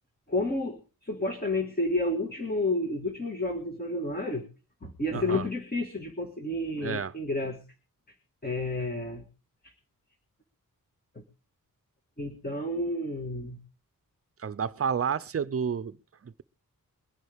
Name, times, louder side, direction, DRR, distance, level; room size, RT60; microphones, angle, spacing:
voice 1, 0.3-4.5 4.8-7.6 8.4-9.3 9.6-9.7 11.2-11.3 12.2-13.6, left 2 dB, 25° left, 1.8 m, -30 dB
voice 2, 5.1-5.5 6.8-7.1 14.4-16.4, right 7 dB, 45° right, 0.6 m, -31 dB
22.0 x 11.0 x 3.5 m
wide cardioid pair, 150°, 34 cm